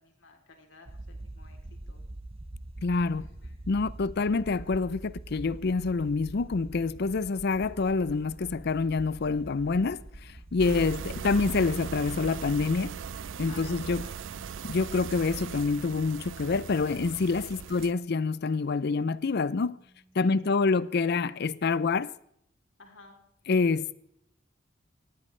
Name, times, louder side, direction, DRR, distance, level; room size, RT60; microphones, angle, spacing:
voice 1, 0.0-1.6 1.9-2.1 3.2-3.6 10.5-10.9 13.4-14.1 17.5-17.7 20.1-20.8 22.8-23.2, left 2 dB, 80° left, 3.4 m, -52 dB
sound 1, 0.9-16.5, right 1 dB, 30° right, 0.8 m, -46 dB
voice 2, 2.8-3.2 3.7-11.0 11.2-13.0 13.4-14.0 14.6-19.8 20.2-22.1 23.5-24.0, left 4 dB, 55° left, 0.5 m, -27 dB
sound 2, 10.6-17.9, right 6 dB, 75° right, 0.5 m, -39 dB
sound 3, 11.0-20.8, right 1 dB, 45° right, 1.7 m, -53 dB
19.0 x 15.5 x 3.3 m
head